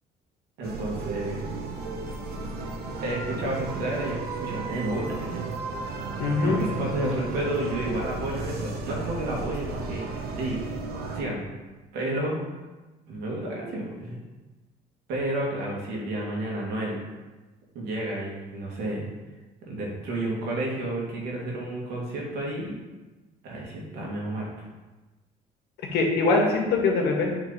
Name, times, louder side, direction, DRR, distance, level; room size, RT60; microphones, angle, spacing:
sound 1, 0.6-11.2, right 3 dB, 65° right, 0.9 m, -34 dB
voice 1, 0.6-1.4 3.0-5.5 6.4-10.6 11.1-11.4 11.9-12.4 13.1-14.2 15.1-17.0 17.7-19.1 19.7-22.8 23.4-24.5, right 1 dB, 85° right, -3 dB, 2.1 m, -31 dB
voice 2, 6.2-6.6 25.9-27.3, left 3 dB, 75° left, 0 dB, 1.4 m, -22 dB
8.8 x 3.3 x 4.0 m, 1.2 s
cardioid pair, 110°, 17 cm